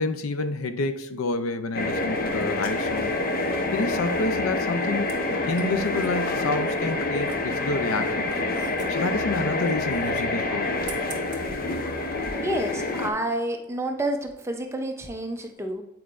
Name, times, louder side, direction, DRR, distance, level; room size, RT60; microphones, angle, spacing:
voice 1, 0.0-3.3 3.7-8.3 8.9-10.8, left 3 dB, 90° left, 0.5 m, -28 dB
sound 1, 1.7-13.1, left 2 dB, 45° left, 0.6 m, -27 dB
sound 2, 2.2-12.6, right 4 dB, 40° right, 0.8 m, -46 dB
voice 2, 12.4-15.8, right 1 dB, 15° right, 0.6 m, -29 dB
8.3 x 4.6 x 2.5 m
head